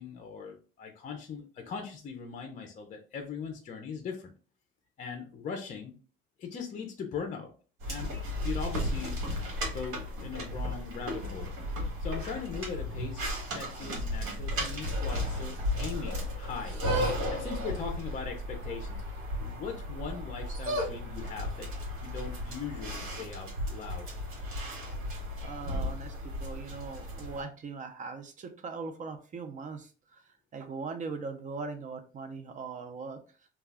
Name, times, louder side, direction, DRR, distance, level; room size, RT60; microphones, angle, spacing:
voice 1, 0.0-4.3 5.0-5.9 6.4-7.5 7.9-8.2 8.4-9.2 9.7-11.5 12.0-13.3 13.5-16.8 17.3-19.0 19.4-21.7 22.0-24.1, left 6 dB, 35° left, 3 dB, 0.5 m, -40 dB
sound 1, 7.8-27.4, left 1 dB, 85° right, 1.2 m, -34 dB
voice 2, 25.4-33.2, right 4 dB, 35° right, 6 dB, 0.5 m, -40 dB
2.3 x 2.2 x 3.4 m, 0.37 s
cardioid pair, 125°, 21 cm